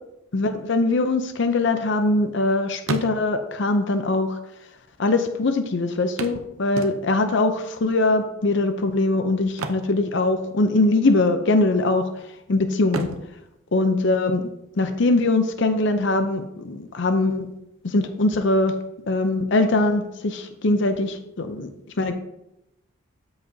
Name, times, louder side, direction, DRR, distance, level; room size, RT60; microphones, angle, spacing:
voice 1, 0.3-4.4 5.0-12.1 12.5-13.1 13.7-14.5 14.8-17.5 17.8-18.8 19.1-21.7 22.0-22.1, left 2 dB, 60° left, 7 dB, 0.6 m, -22 dB
sound 1, 1.2-2.4 2.7-3.6 4.5-4.6 4.8-4.9 6.2-7.4 9.4-10.7 11.0-11.3 11.8-12.4 12.8-14.6 16.6-16.7 17.1-17.2, right 2 dB, 85° right, 0.7 m, -34 dB
13.0 x 4.9 x 2.8 m, 0.87 s
head